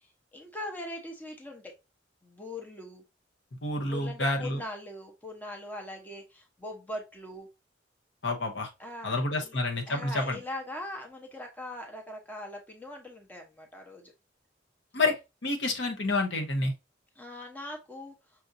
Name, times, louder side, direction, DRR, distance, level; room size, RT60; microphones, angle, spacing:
voice 1, 0.3-1.7 2.2-3.0 3.8-7.5 8.8-9.6 9.9-14.1 17.2-18.1, left 1 dB, 10° left, 0.8 m, -41 dB
voice 2, 3.6-4.6 8.2-8.7 9.0-10.4 14.9-15.1 15.4-16.7, left 2 dB, 65° left, 0.9 m, -28 dB
5.8 x 2.5 x 2.6 m
head